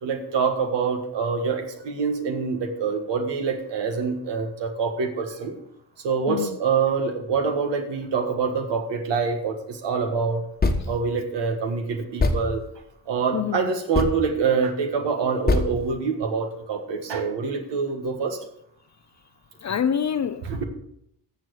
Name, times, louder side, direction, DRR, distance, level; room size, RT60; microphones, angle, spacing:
voice 1, 0.0-5.6 6.0-10.4 10.9-12.6 13.1-18.4 20.4-20.6, right 5 dB, 80° right, 1.6 m, -25 dB
sound 1, 10.6-11.0 11.5-11.6 12.2-12.6 13.9-14.2 15.5-15.7, left 3 dB, 20° left, 1.2 m, -22 dB
voice 2, 13.3-13.7 19.6-20.5, left 8 dB, 40° left, 0.6 m, -26 dB
13.5 x 7.1 x 4.7 m
cardioid pair, 105°, 42 cm